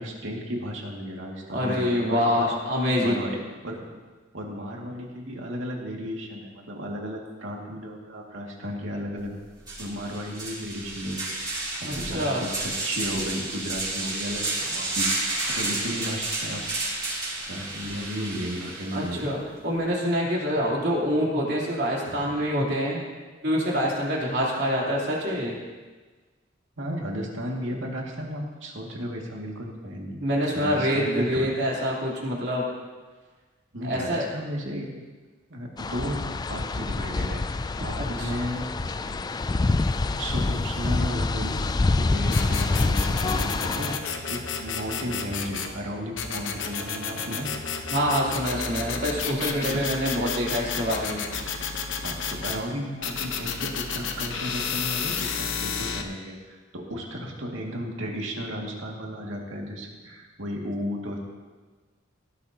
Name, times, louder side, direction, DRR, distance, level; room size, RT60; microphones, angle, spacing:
voice 1, 0.0-2.5 3.0-3.4 3.6-3.8 4.3-9.3 9.8-16.6 16.9-17.1 17.5-19.3 22.0-22.3 26.8-30.2 30.5-31.5 33.7-34.9 35.5-37.4 37.8-38.6 40.0-47.5 49.7-49.9 52.0-61.2, equal, 85° right, -1 dB, 2.2 m, -34 dB
voice 2, 1.5-3.1 11.8-12.4 18.9-19.4 19.6-23.0 23.4-25.5 30.2-32.6 33.8-34.3 37.9-38.3 47.9-51.2, equal, 60° right, -4 dB, 3.4 m, -26 dB
medium pull, 9.2-9.3 9.6-19.2, right 2 dB, 20° right, 4.3 m, -31 dB
sound 1, 35.8-44.0, left 3 dB, 20° left, 0.3 m, -26 dB
sound 2, 42.3-45.7 46.2-52.6 53.0-56.0, left 5 dB, 70° left, 1.0 m, -31 dB
18.0 x 12.0 x 2.9 m, 1.4 s
head